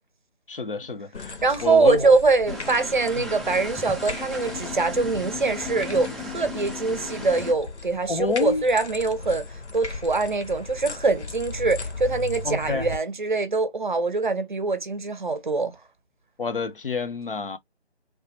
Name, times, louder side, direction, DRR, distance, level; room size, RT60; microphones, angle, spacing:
voice 1, 0.5-2.2 3.1-3.3 8.1-8.6 12.4-12.9 16.4-17.6, left 4 dB, 55° left, 0.6 m, -28 dB
sound 1, 1.1-13.0, left 3 dB, 80° left, 1.0 m, -37 dB
voice 2, 1.4-15.7, right 3 dB, 45° right, 0.6 m, -23 dB
sound 2, 2.5-7.5, left 3 dB, ahead, 0.4 m, -36 dB
3.3 x 2.1 x 3.0 m
figure-of-eight pair, 155°, 34 cm